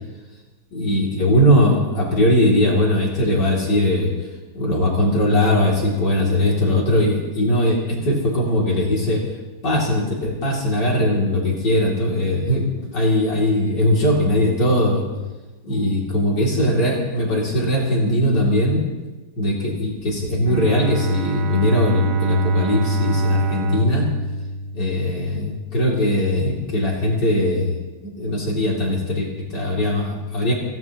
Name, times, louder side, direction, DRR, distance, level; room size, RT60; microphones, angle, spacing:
voice 1, 0.7-4.1 4.5-9.2 9.6-15.0 15.6-18.8 19.4-24.1 24.7-30.5, left 1 dB, 60° left, -4 dB, 3.7 m, -20 dB
Bowed string instrument, 20.5-25.4, right 1 dB, 90° right, 2.1 m, -23 dB
26.5 x 17.0 x 3.1 m, 1.2 s
omnidirectional pair, 2.1 m